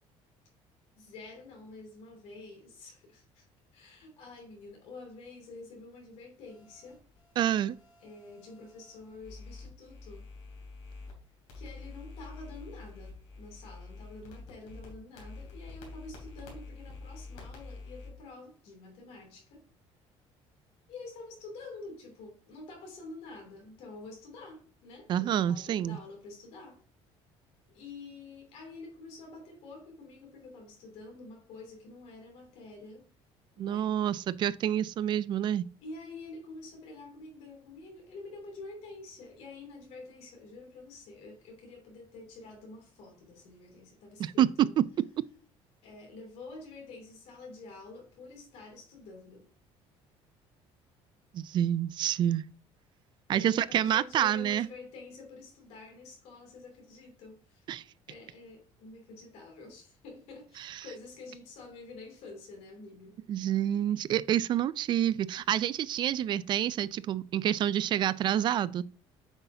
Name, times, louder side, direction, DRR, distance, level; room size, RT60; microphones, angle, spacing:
voice 1, 0.9-3.5 3.7-7.0 8.0-10.3 11.5-19.6 20.9-26.8 27.7-33.1 33.6-34.0 35.8-44.7 45.8-49.5 53.3-57.6 58.1-63.2, left 3 dB, 70° left, 2.9 m, -48 dB
sound 1, 6.5-11.1 11.5-18.1, left 3 dB, 90° left, 3.2 m, -47 dB
voice 2, 7.4-7.8 25.1-26.0 33.6-35.6 44.2-44.9 51.3-52.4 53.3-54.7 57.7-57.8 60.6-60.8 63.3-68.8, right 10 dB, 40° right, 0.3 m, -28 dB
8.0 x 5.6 x 2.7 m
cardioid pair, 145°, 11 cm